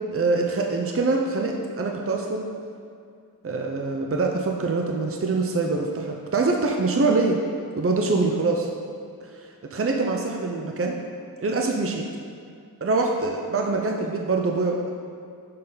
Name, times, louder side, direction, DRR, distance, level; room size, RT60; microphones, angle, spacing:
voice 1, 0.1-2.5 3.4-7.4 7.8-8.7 9.7-11.0 11.4-12.0 12.8-14.9, right 3 dB, 40° right, 1 dB, 0.6 m, -24 dB
6.6 x 5.6 x 3.9 m, 2.3 s
wide cardioid pair, 50°, 37 cm